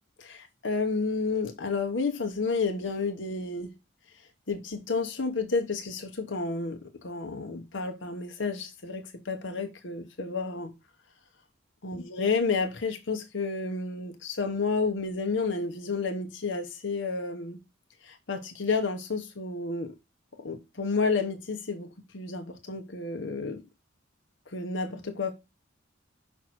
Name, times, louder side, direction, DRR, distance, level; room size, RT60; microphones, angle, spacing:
voice 1, 0.2-3.7 4.1-10.7 11.8-17.6 18.0-19.9 20.3-23.6 24.5-25.3, left 4 dB, 65° left, 1.0 m, -31 dB
6.2 x 5.6 x 4.2 m
head